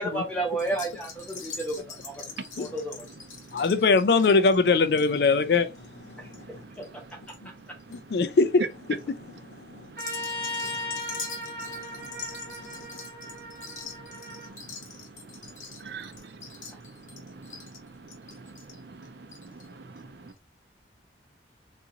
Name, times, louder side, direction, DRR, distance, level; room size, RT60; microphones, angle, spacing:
voice 1, 0.0-2.2 2.6-3.0 6.2-6.3, right 2 dB, 5° left, 1.0 m, -31 dB
sound 1, 0.6-7.4 7.7-8.2 8.7-9.0 9.9-19.7 20.0-20.1 20.3-20.4, left 5 dB, 40° left, 1.1 m, -43 dB
voice 2, 3.5-6.6 7.9-8.6 9.2-9.9 11.6-12.3 12.6-12.8, left 4 dB, 60° left, 0.4 m, -24 dB
voice 3, 6.2-6.8 7.7-7.8 9.7-13.0 13.3-20.3, right 3 dB, 70° right, 0.6 m, -47 dB
Trumpet, 10.0-14.5, left 1 dB, 55° right, 1.3 m, -37 dB
3.7 x 2.6 x 2.8 m
head